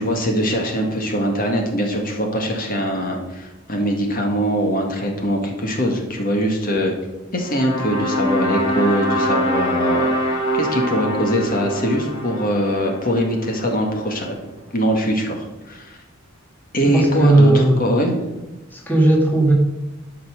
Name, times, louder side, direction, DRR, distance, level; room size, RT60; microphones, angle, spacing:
voice 1, 0.0-6.9 7.3-10.1 10.5-14.4 14.7-16.0 16.7-18.1, equal, 45° left, 2 dB, 1.9 m, -22 dB
sound 1, 7.4-13.7, equal, 90° left, 4.0 m, -24 dB
voice 2, 16.9-17.8 18.7-19.5, right 2 dB, 10° left, -1 dB, 1.9 m, -15 dB
12.5 x 5.9 x 6.6 m, 1.1 s
head